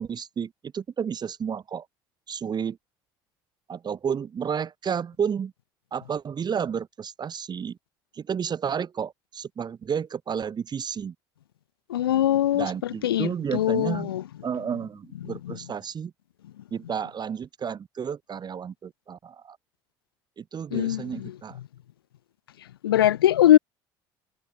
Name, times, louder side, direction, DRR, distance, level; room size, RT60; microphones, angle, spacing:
voice 1, 0.0-1.9 2.3-2.8 3.7-5.5 5.9-7.8 8.2-11.1 12.5-14.1 14.4-16.1 16.7-19.6 20.4-21.6, right 7 dB, 35° right, 2.1 m, -31 dB
voice 2, 11.9-14.2 15.5-15.6 20.7-21.3 22.8-23.6, left 12 dB, 85° left, 0.4 m, -22 dB
hypercardioid pair, 65°, 12 cm